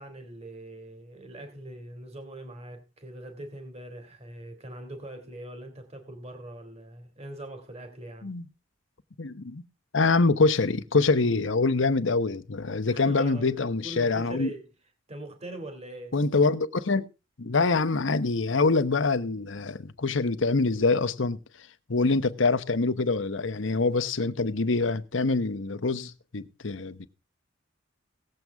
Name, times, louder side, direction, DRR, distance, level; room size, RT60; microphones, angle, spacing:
voice 1, 0.0-8.3 12.8-14.7 15.1-16.2, right 1 dB, 35° right, 2.5 m, -42 dB
voice 2, 9.2-9.6 9.9-14.5 16.1-17.1 17.4-21.4 21.9-27.1, left 3 dB, 70° left, 0.9 m, -25 dB
18.5 x 7.9 x 3.5 m
head